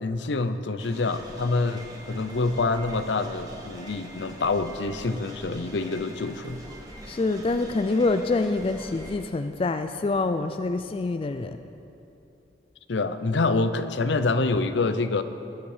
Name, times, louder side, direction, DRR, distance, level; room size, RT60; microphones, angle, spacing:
voice 1, 0.0-6.6 12.9-15.2, left 3 dB, 75° left, 11 dB, 0.6 m, -26 dB
sound 1, 0.8-9.2, equal, 20° right, 1.6 m, -43 dB
voice 2, 7.1-11.6, left 3 dB, 30° left, 8 dB, 0.3 m, -26 dB
20.0 x 8.0 x 5.0 m, 2.8 s
head